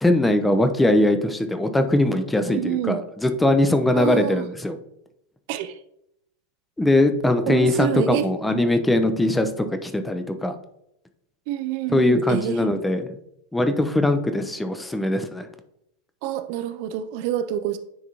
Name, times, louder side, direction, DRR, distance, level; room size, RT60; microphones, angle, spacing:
voice 1, 0.0-4.8 6.8-10.5 11.9-13.1 13.5-15.5, left 1 dB, 5° left, 8 dB, 0.6 m, -21 dB
voice 2, 2.4-3.0 3.9-4.5 5.5-5.8 7.5-8.3 11.5-12.6 16.2-17.8, right 11 dB, 45° right, 10 dB, 0.4 m, -27 dB
10.0 x 3.6 x 2.9 m, 0.77 s
figure-of-eight pair, 90°, 0 cm